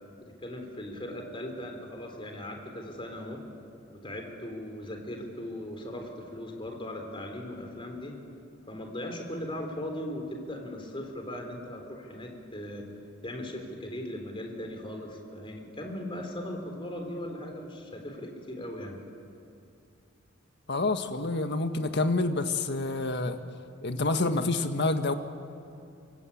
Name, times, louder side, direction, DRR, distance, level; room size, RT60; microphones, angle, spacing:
voice 1, 0.2-3.4 3.9-8.2 8.7-12.9 13.2-19.0, left 1 dB, 25° left, 3 dB, 3.7 m, -38 dB
voice 2, 20.7-23.4 23.8-25.1, left 2 dB, 60° left, 8 dB, 1.5 m, -28 dB
25.0 x 23.5 x 8.6 m, 2.5 s
head